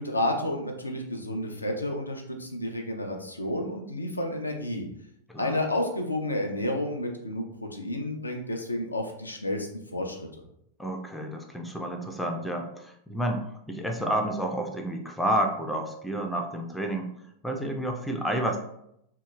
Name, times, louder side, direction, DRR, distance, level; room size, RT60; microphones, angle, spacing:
voice 1, 0.0-4.9 5.4-10.4, left 1 dB, 80° left, 2 dB, 0.4 m, -31 dB
voice 2, 5.3-5.6 10.8-17.1 17.4-18.6, right 1 dB, ahead, 2 dB, 0.4 m, -30 dB
2.8 x 2.7 x 2.3 m, 0.75 s
figure-of-eight pair, 90°, 0 cm